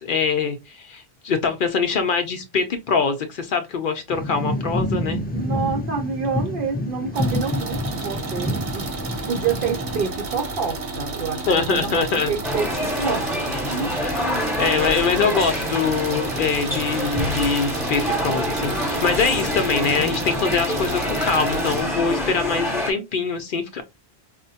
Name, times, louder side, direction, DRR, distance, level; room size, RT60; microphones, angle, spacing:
voice 1, 0.0-5.2 11.5-12.3 14.0-23.8, left 5 dB, 60° left, 0.7 m, -23 dB
sound 1, 4.1-10.0, equal, 15° left, 0.3 m, -28 dB
voice 2, 5.3-8.9 9.3-13.2 13.6-14.0 14.3-14.5, right 5 dB, 60° right, 0.7 m, -28 dB
sound 2, 7.1-21.8, right 3 dB, 85° right, 1.2 m, -31 dB
sound 3, 12.4-22.9, equal, 5° right, 1.0 m, -26 dB
4.9 x 2.1 x 2.7 m
omnidirectional pair, 1.1 m